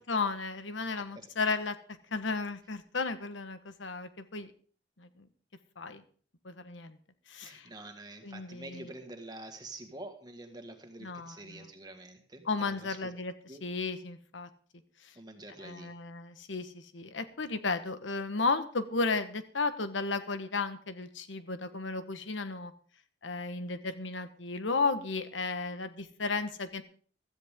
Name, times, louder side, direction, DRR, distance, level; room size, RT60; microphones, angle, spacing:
voice 1, 0.0-1.8 2.1-4.5 5.0-5.3 5.8-6.0 6.4-7.0 7.3-7.7 8.2-8.9 11.0-11.7 12.4-13.3 13.6-14.5 15.0-15.1 15.6-22.7 23.2-26.8, left 4 dB, 90° left, 10 dB, 1.3 m, -34 dB
voice 2, 7.4-13.1 13.5-13.6 15.2-15.9, right 2 dB, 20° right, 5 dB, 1.8 m, -47 dB
16.0 x 13.5 x 3.7 m, 0.43 s
head